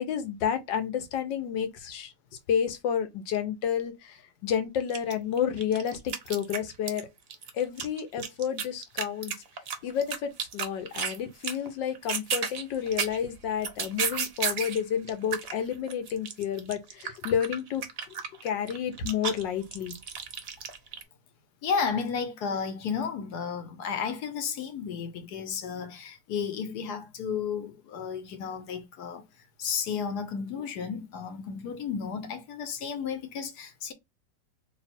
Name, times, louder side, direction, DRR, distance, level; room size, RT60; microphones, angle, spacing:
voice 1, 0.0-2.1 2.5-7.1 7.5-9.4 9.8-18.2 18.4-19.9, left 8 dB, 85° left, 1.5 m, -30 dB
sound 1, 4.5-4.6 4.9-7.0 7.3-11.2 11.4-11.7 12.0-14.8 15.1-21.0, right 6 dB, 55° right, 0.7 m, -33 dB
voice 2, 21.6-29.2 29.6-33.9, left 6 dB, 65° left, 1.3 m, -33 dB
3.2 x 2.9 x 4.3 m
omnidirectional pair, 1.9 m